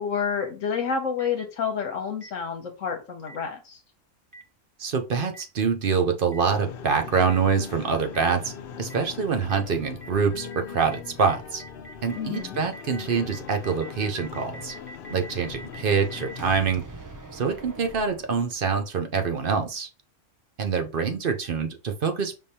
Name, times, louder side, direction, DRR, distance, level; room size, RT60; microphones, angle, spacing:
voice 1, 0.0-3.8 12.2-12.6, left 6 dB, 80° left, 1.1 m, -29 dB
Boom, 1.2-1.3 2.2-2.3 3.3-3.4 4.3-4.4 5.3-5.4 6.3-6.4 7.3-7.4 8.1-8.2 8.9-9.0 9.5-9.6 10.0-10.1 10.5-10.6 10.9-11.0 11.3-18.8, right 2 dB, 30° right, 0.3 m, -43 dB
voice 2, 4.8-8.5 8.8-11.6 12.0-14.7 15.1-16.8 17.3-19.9 20.6-22.4, right 5 dB, 50° right, 0.8 m, -25 dB
sound 1, 6.4-16.5, left 6 dB, 60° left, 0.6 m, -40 dB
5.3 x 3.3 x 2.8 m
omnidirectional pair, 1.3 m